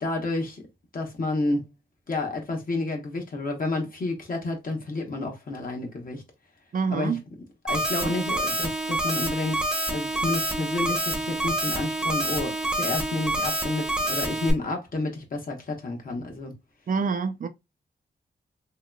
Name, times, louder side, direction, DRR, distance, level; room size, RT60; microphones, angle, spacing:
voice 1, 0.0-0.6 0.9-1.6 2.1-6.2 6.9-7.2 7.6-9.6 9.9-16.5, left 2 dB, 50° left, 0.9 m, -30 dB
voice 2, 6.7-7.2 8.0-8.1 16.9-17.5, right 5 dB, 50° right, 0.4 m, -26 dB
sound 1, 7.7-14.5, right 1 dB, 5° right, 0.8 m, -27 dB
2.9 x 2.8 x 2.2 m
cardioid pair, 80°, 18 cm